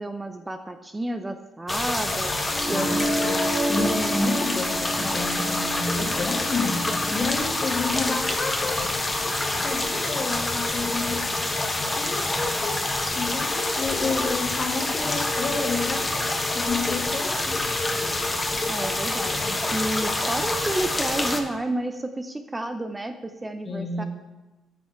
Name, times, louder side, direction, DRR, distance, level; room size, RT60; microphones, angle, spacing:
voice 1, 0.0-2.3 2.7-3.2 18.7-24.0, right 1 dB, 15° right, 7 dB, 0.5 m, -31 dB
sound 1, 1.7-21.4, left 2 dB, 20° left, 1.0 m, -27 dB
sound 2, 2.5-8.5, right 1 dB, 35° right, 3.1 m, -31 dB
voice 2, 2.7-8.9 9.6-11.3 11.9-16.1 16.5-17.7 23.6-24.1, left 3 dB, 40° left, 2 dB, 1.6 m, -30 dB
9.3 x 5.6 x 4.5 m, 1.1 s
cardioid pair, 90°, 0 cm